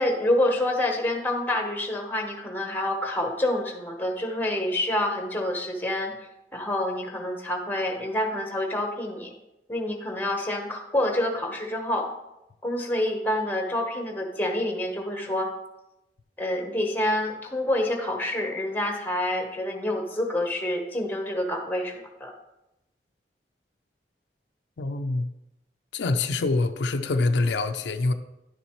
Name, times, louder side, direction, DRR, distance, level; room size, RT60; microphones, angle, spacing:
voice 1, 0.0-6.1 6.5-9.3 9.7-12.1 12.6-15.5 16.4-22.3, left 1 dB, 10° left, 1.0 m, -27 dB
voice 2, 24.8-25.3 25.9-28.1, left 3 dB, 85° left, 0.5 m, -25 dB
10.5 x 7.0 x 3.0 m
head